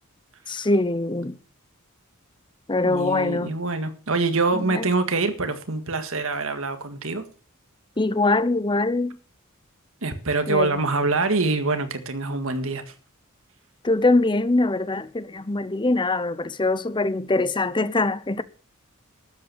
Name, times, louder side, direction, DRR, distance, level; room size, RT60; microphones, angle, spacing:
voice 1, 0.5-1.4 2.7-3.5 4.5-4.9 8.0-9.2 10.5-10.8 13.8-18.4, left 2 dB, 20° left, 0.7 m, -23 dB
voice 2, 2.8-7.3 10.0-12.8, right 3 dB, 65° right, 1.8 m, -25 dB
12.5 x 8.3 x 6.9 m
head